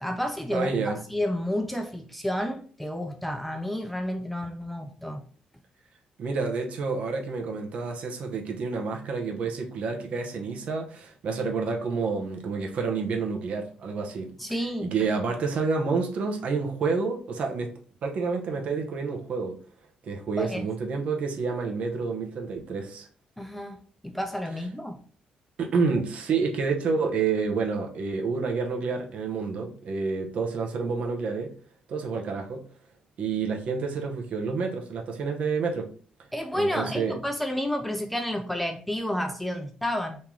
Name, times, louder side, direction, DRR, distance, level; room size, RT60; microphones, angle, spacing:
voice 1, 0.0-5.3 14.4-14.9 20.4-20.7 23.4-25.0 36.3-40.2, left 1 dB, 5° left, 0.3 m, -30 dB
voice 2, 0.5-1.0 6.2-14.3 14.8-17.7 18.0-19.6 20.0-23.1 25.6-31.5 31.9-32.6 33.2-35.9 36.5-37.2, right 4 dB, 55° right, 0.8 m, -29 dB
3.1 x 2.8 x 3.6 m
cardioid pair, 155°, 3 cm